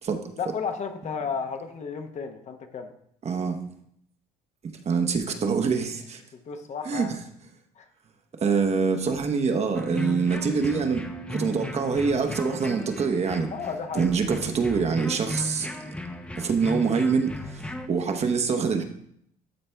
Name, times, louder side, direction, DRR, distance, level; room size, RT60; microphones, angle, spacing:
voice 1, 0.4-2.9 6.5-7.2 7.8-7.9 13.5-14.1, left 6 dB, 45° left, 6 dB, 0.9 m, -33 dB
voice 2, 3.2-3.6 4.8-6.2 6.9-7.2 8.4-11.0 11.3-13.5 13.9-15.7 16.4-17.6 17.9-18.8, right 5 dB, 40° right, 6 dB, 0.9 m, -25 dB
sound 1, 9.7-17.9, left 1 dB, 5° left, 0.7 m, -36 dB
sound 2, 10.3-15.5, right 7 dB, 85° left, 1.2 m, -45 dB
12.0 x 4.2 x 3.4 m, 0.69 s
cardioid pair, 110°, 17 cm